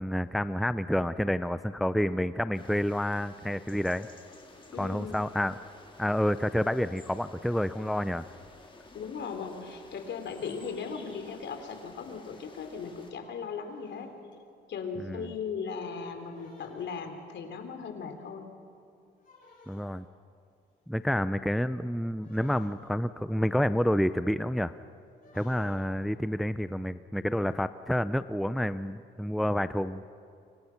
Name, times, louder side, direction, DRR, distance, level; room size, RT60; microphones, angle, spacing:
voice 1, 0.0-4.1 4.8-5.6 6.0-8.2 15.0-15.3 19.7-20.0 20.9-24.7 25.3-30.0, equal, ahead, 13 dB, 0.5 m, -29 dB
sound 1, 2.5-13.1, left 3 dB, 25° left, 4.0 m, -53 dB
voice 2, 4.7-5.2 8.9-14.1 14.7-18.5, left 5 dB, 65° left, 6 dB, 3.6 m, -38 dB
sound 2, 7.5-8.4 9.0-9.1 9.5-11.3 12.1-12.2 12.5-12.9 13.2-14.3 15.3-15.7 16.1-17.2 18.1-18.3 19.2-20.3 22.2-23.0 25.1-26.1, left 3 dB, 45° left, 8.0 m, -57 dB
30.0 x 25.0 x 5.9 m, 2.4 s
cardioid pair, 90°, 20 cm